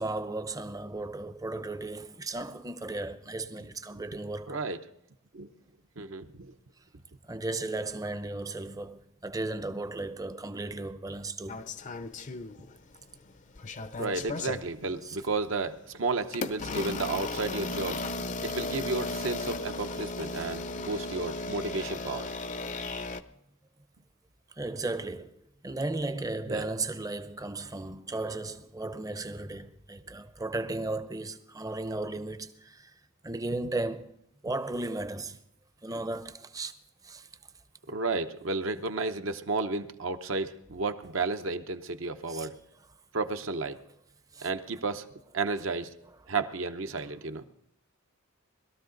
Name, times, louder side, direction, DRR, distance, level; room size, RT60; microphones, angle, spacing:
voice 1, 0.0-4.6 7.3-11.7 15.0-15.2 24.6-25.3 25.6-32.9 33.2-34.1 34.4-35.4 35.8-36.7 37.0-37.3 42.3-42.5 44.3-44.5, right 2 dB, 15° right, 0.7 m, -35 dB
voice 2, 4.5-4.8 5.3-5.5 6.0-6.5 14.0-18.0 18.4-22.3 26.5-26.7 37.9-42.6 43.1-43.8 44.4-45.1 45.3-45.9 46.3-47.5, right 3 dB, 65° right, 0.9 m, -32 dB
sound 1, 11.5-13.0 13.3-14.7 15.3-15.5 16.3-23.2, left 3 dB, 35° left, 0.6 m, -35 dB
21.0 x 13.0 x 3.9 m
head